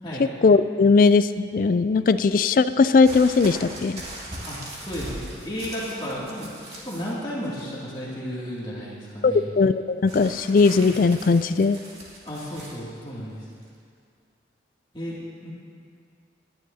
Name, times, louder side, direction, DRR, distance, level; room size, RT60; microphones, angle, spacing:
voice 1, 0.4-4.0 9.2-11.8, left 4 dB, 50° left, 13 dB, 0.3 m, -19 dB
sound 1, 3.0-7.1 7.4-8.0 10.1-12.8 13.6-13.7, right 1 dB, 35° right, 2.2 m, -40 dB
voice 2, 4.5-6.5 6.8-9.5 12.2-13.4 14.9-15.2 15.4-15.5, equal, 25° left, -7 dB, 2.4 m, -33 dB
19.0 x 11.0 x 2.8 m, 2.3 s
head